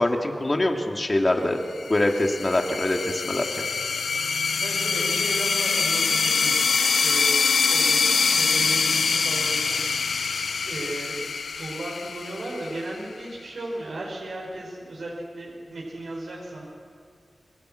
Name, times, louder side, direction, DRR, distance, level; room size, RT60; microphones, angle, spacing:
voice 1, 0.0-1.6 1.9-3.7, left 1 dB, 30° left, 2 dB, 2.7 m, -24 dB
sound 1, 1.8-13.0, left 5 dB, 85° left, 0.8 m, -24 dB
voice 2, 4.6-6.5 7.0-8.0 8.3-10.0 10.6-11.2 11.5-16.7, right 1 dB, 75° right, -4 dB, 5.5 m, -35 dB
29.0 x 22.5 x 6.6 m, 2.3 s
wide cardioid pair, 100°, 0 cm